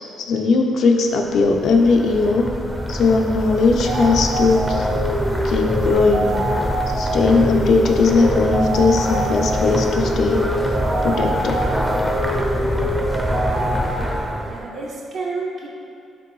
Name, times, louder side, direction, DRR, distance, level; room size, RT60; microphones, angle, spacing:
voice 1, 0.2-2.5 2.9-4.9 5.2-6.3 6.9-10.5 11.0-11.7, left 4 dB, 70° left, 2 dB, 0.4 m, -18 dB
sound 1, 1.2-14.7, equal, 5° right, 0.5 m, -25 dB
sound 2, 3.9-13.9, equal, 85° right, 1.1 m, -25 dB
voice 2, 14.4-15.7, right 3 dB, 60° right, -2 dB, 0.7 m, -30 dB
5.1 x 2.6 x 3.1 m, 2.5 s
cardioid pair, 90°, 0 cm